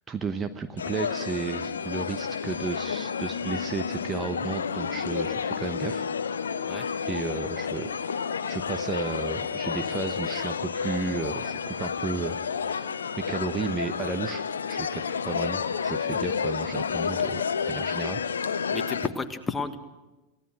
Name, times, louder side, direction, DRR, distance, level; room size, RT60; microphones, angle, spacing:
voice 1, 0.1-6.1 6.9-12.4 12.7-12.9 13.2-18.2, right 4 dB, 20° right, 8 dB, 1.0 m, -33 dB
sound 1, 0.8-19.1, left 6 dB, 70° left, 0.8 m, -30 dB
voice 2, 18.7-19.8, left 3 dB, 10° left, 8 dB, 1.7 m, -32 dB
28.0 x 17.0 x 6.2 m, 1.1 s
figure-of-eight pair, 90°, 0 cm